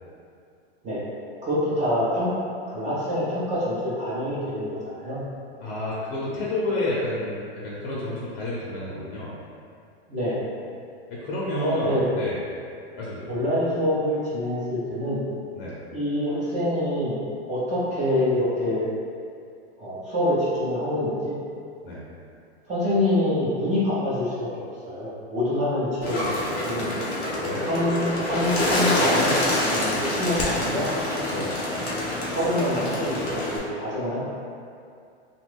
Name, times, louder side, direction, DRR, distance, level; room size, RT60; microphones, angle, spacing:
voice 1, 1.4-2.3 2.7-5.2 10.1-10.4 11.6-12.1 13.3-15.2 15.9-17.2 17.5-18.9 19.8-21.4 22.7-27.0 27.6-28.0 28.2-29.3 29.7-30.9 32.3-34.2, left 1 dB, 20° right, -9 dB, 0.8 m, -26 dB
voice 2, 5.6-9.4 11.1-12.4 13.0-13.2 15.6-15.8 21.8-22.0 27.4-27.7 31.3-31.5, left 1 dB, 60° left, -6 dB, 0.8 m, -30 dB
Bird, 26.0-33.6, left 1 dB, 30° left, 0.6 m, -26 dB
2.7 x 2.4 x 3.3 m, 2.4 s
hypercardioid pair, 130°, 33 cm